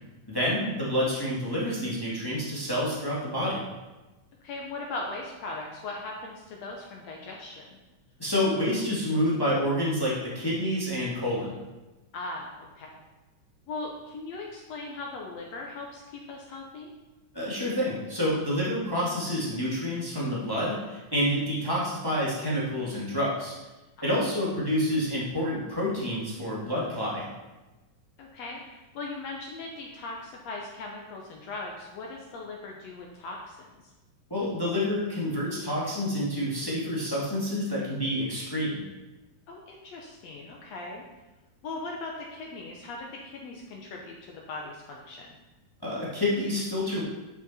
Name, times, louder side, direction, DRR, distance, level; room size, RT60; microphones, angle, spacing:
voice 1, 0.3-3.6 8.2-11.5 17.3-23.5 24.0-27.3 34.3-38.8 45.8-47.0, equal, 15° left, -7 dB, 0.8 m, -28 dB
voice 2, 4.4-7.8 12.1-13.0 13.7-16.9 24.0-24.2 28.2-33.9 39.5-41.0 41.6-45.3, left 3 dB, 70° left, -1 dB, 1.7 m, -39 dB
10.5 x 5.6 x 4.2 m, 1.1 s
omnidirectional pair, 3.8 m